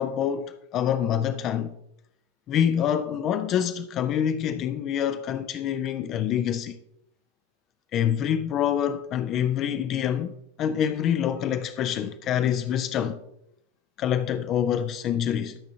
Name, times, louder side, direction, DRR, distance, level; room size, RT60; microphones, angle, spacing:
voice 1, 0.0-1.7 2.5-6.8 7.9-10.3 10.6-13.2 14.0-15.6, left 9 dB, 35° left, 0.4 m, -26 dB
12.0 x 6.1 x 2.8 m
figure-of-eight pair, 90°, 0 cm